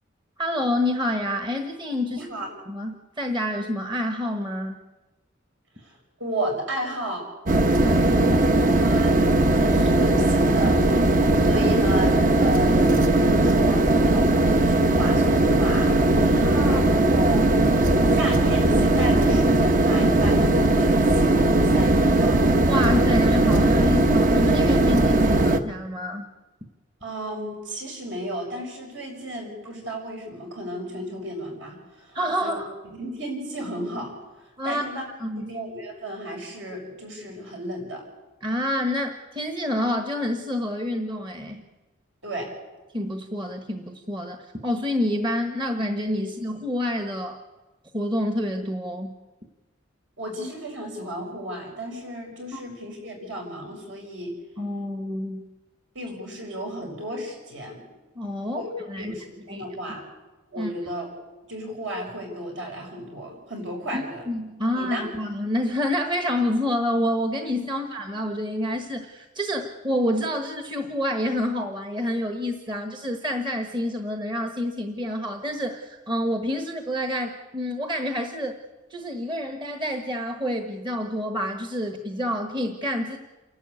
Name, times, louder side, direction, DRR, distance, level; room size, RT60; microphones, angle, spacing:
voice 1, 0.4-2.2 2.7-4.8 7.8-8.4 16.3-16.8 22.7-26.3 32.1-32.7 34.6-34.9 35.2-35.5 38.4-41.6 42.9-44.4 44.6-47.4 47.9-49.1 52.5-52.6 54.6-55.4 58.1-58.6 58.9-59.1 59.5-59.7 60.6-60.7 63.9-78.5 78.9-83.2, left 1 dB, 25° right, 5 dB, 1.3 m, -28 dB
voice 2, 2.1-2.5 5.8-7.2 8.8-17.5 18.1-22.4 27.0-32.6 33.0-35.0 35.4-38.0 42.2-42.5 50.2-54.4 55.9-57.8 58.4-58.7 59.0-60.1 60.5-61.1 61.4-64.3 64.7-65.1, right 1 dB, 70° right, 0 dB, 6.6 m, -33 dB
sound 1, 7.5-25.6, right 2 dB, 40° right, 1.0 m, -19 dB
28.5 x 12.0 x 8.5 m, 1.2 s
head